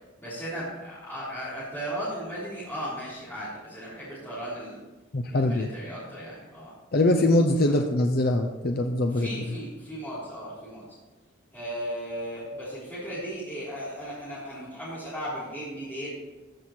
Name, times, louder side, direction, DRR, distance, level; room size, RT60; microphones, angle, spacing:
voice 1, 0.2-4.8 5.3-6.7 7.6-7.8 9.1-10.8 11.5-16.1, equal, 10° left, -13 dB, 3.6 m, -36 dB
voice 2, 5.1-5.7 6.9-9.6, left 1 dB, 50° left, 4 dB, 0.6 m, -23 dB
14.5 x 6.3 x 4.4 m, 1.2 s
head